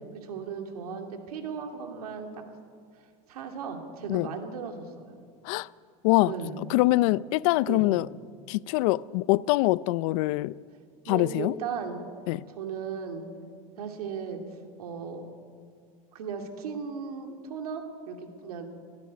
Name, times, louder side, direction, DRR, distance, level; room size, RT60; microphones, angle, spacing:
voice 1, 0.1-2.4 3.3-5.2 6.3-6.6 7.7-7.8 11.0-12.0 12.6-13.3 13.8-14.4 14.8-15.3 16.1-18.7, right 6 dB, 90° right, 2.7 m, -36 dB
voice 2, 6.7-8.1 8.5-10.6 11.1-11.5 12.3-12.4, left 19 dB, 65° left, 0.5 m, -24 dB
17.0 x 16.0 x 9.5 m
supercardioid pair, 125°, 19 cm